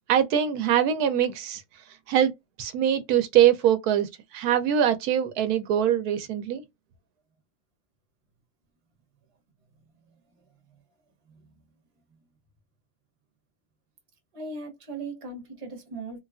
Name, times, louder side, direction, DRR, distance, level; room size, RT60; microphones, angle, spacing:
voice 1, 0.1-1.6 2.1-2.3 2.6-6.6, right 10 dB, 80° right, 1.1 m, -23 dB
voice 2, 14.3-16.2, right 3 dB, 25° right, 0.8 m, -38 dB
3.3 x 2.3 x 2.3 m
omnidirectional pair, 1.6 m